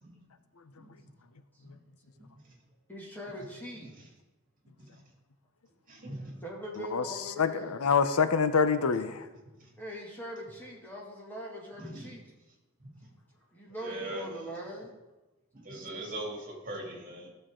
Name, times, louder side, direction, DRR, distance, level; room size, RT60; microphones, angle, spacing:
voice 1, 2.9-3.9 6.4-7.8 9.8-12.3 13.5-14.9, equal, 10° left, -3 dB, 2.1 m, -41 dB
voice 2, 5.9-6.3 9.6-9.7 11.8-12.1 13.8-14.3 15.5-17.3, right 1 dB, 40° right, -1 dB, 2.7 m, -40 dB
voice 3, 7.4-9.3, left 5 dB, 85° left, 11 dB, 0.7 m, -26 dB
16.0 x 6.8 x 3.8 m, 1.1 s
head